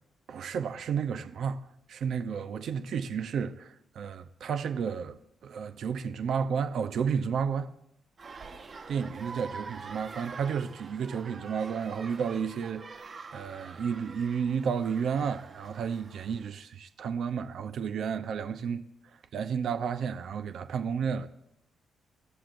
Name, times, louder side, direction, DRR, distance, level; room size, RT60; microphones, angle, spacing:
voice 1, 0.3-1.6 1.9-7.7 8.9-13.0 13.3-18.9 19.3-21.3, right 6 dB, 60° right, 0.7 m, -32 dB
sound 1, 8.2-16.5, right 4 dB, 35° right, 1.2 m, -46 dB
26.5 x 13.5 x 2.6 m
cardioid pair, 155°, 0 cm